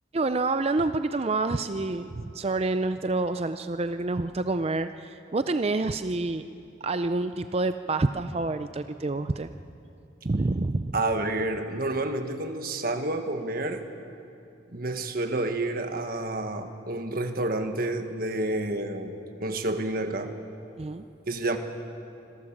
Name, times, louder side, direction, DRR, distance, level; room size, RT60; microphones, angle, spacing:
voice 1, 0.1-6.4 6.8-9.5 10.2-11.0 20.8-21.0, right 2 dB, 30° right, 10 dB, 0.5 m, -28 dB
voice 2, 10.9-13.8 14.7-19.1 19.4-20.3 21.3-21.6, right 2 dB, 50° right, 6 dB, 1.4 m, -29 dB
26.0 x 17.0 x 7.3 m, 2.7 s
head